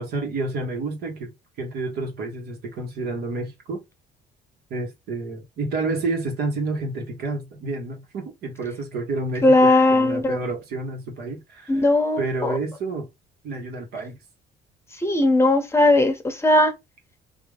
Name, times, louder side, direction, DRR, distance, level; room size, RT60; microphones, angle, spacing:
voice 1, 0.0-1.3 1.6-3.8 4.7-11.8 12.2-13.1 13.4-14.2, right 3 dB, 70° right, 1.6 m, -29 dB
voice 2, 9.4-10.4 11.7-12.6 15.0-16.7, left 2 dB, 15° left, 0.8 m, -18 dB
3.8 x 2.8 x 3.6 m
cardioid pair, 110°, 17 cm